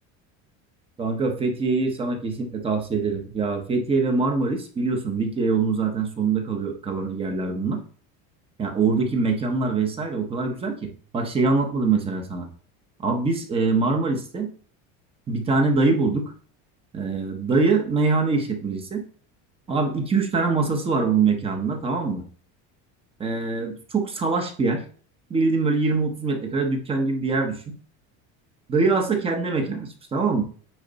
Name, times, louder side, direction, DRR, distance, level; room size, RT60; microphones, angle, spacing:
voice 1, 1.0-7.8 8.6-12.5 13.0-14.5 15.3-16.3 16.9-19.0 19.7-22.2 23.2-24.8 25.3-27.8 28.7-30.4, right 4 dB, 15° right, 4 dB, 0.9 m, -24 dB
9.0 x 3.9 x 4.0 m, 0.43 s
cardioid pair, 175°, 34 cm